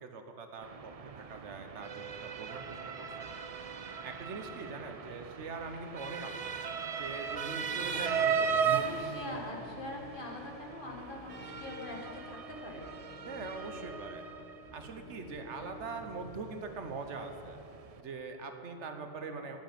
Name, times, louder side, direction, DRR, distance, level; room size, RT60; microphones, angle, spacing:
voice 1, 0.0-3.1 4.0-6.5 6.9-9.0 13.3-14.2 14.7-17.6 18.0-19.6, right 4 dB, 75° right, 6 dB, 1.2 m, -42 dB
Motor vehicle (road) / Siren, 0.6-18.0, right 6 dB, 50° right, 0.4 m, -37 dB
sound 1, 7.2-16.4, left 3 dB, 90° left, 2.4 m, -52 dB
voice 2, 8.7-12.9, left 1 dB, 45° left, 0 dB, 1.8 m, -43 dB
9.2 x 7.7 x 9.2 m, 2.8 s
omnidirectional pair, 1.2 m